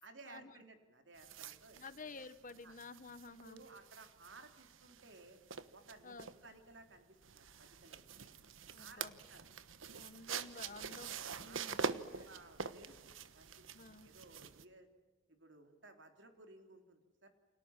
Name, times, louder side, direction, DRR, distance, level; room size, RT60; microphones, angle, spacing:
voice 1, 0.0-1.9 2.6-2.8 3.4-5.4 5.7-6.2 6.4-8.1 8.8-9.0 9.3-9.6 10.6-10.7 11.4-11.8 12.3-14.9 15.3-17.3, right 2 dB, 65° right, 6 dB, 3.6 m, -58 dB
sound 1, 1.2-14.6, right 5 dB, 80° right, 1.2 m, -46 dB
voice 2, 1.7-3.6 6.0-6.3 8.7-9.2 9.9-11.1 11.4-12.3 13.7-14.1, left 3 dB, 40° left, 13 dB, 1.1 m, -52 dB
29.5 x 26.5 x 7.4 m, 1.2 s
head